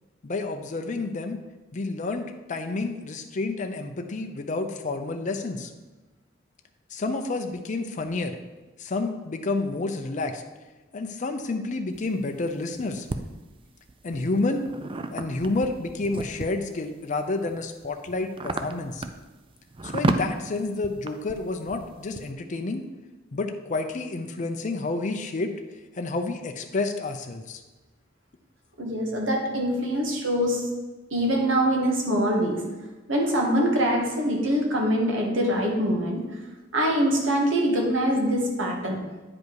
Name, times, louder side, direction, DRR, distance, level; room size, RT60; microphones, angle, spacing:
voice 1, 0.2-1.4 1.7-5.7 6.9-8.4 8.8-10.4 10.9-13.1 14.0-14.7 15.1-19.0 19.8-22.8 23.3-25.5 26.0-27.6, left 3 dB, 40° left, 5 dB, 0.5 m, -29 dB
sound 1, 11.9-13.2 13.9-16.7 17.3-22.3, right 2 dB, 25° right, 0.4 m, -32 dB
voice 2, 28.8-30.6 31.1-32.6 33.1-36.2 36.7-39.0, equal, 80° right, 0 dB, 1.8 m, -24 dB
9.4 x 5.2 x 4.7 m, 1.2 s
head